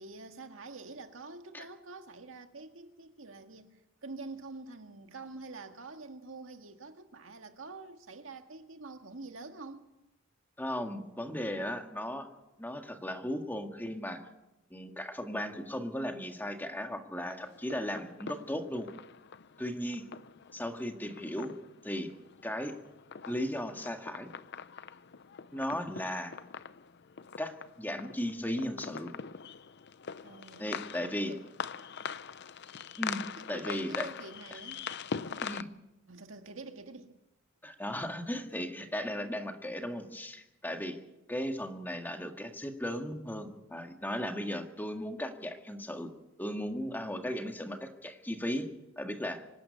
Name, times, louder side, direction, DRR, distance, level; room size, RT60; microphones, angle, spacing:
voice 1, 0.0-9.8 30.2-31.4 33.4-34.9 35.2-35.7 36.1-37.1, right 3 dB, 75° right, 1.9 m, -47 dB
voice 2, 10.6-12.3 12.6-14.2 14.7-18.9 19.6-20.0 20.5-21.5 21.8-22.1 22.4-22.7 23.3-24.3 25.5-26.3 27.4-29.1 30.6-31.3 33.0-33.2 33.5-34.1 34.5-34.6 35.4-35.7 37.6-41.0 41.3-46.1 46.4-48.7 49.0-49.4, equal, 10° left, 1.9 m, -36 dB
sound 1, 17.3-35.6, left 6 dB, 60° left, 0.7 m, -43 dB
25.5 x 12.0 x 9.7 m
head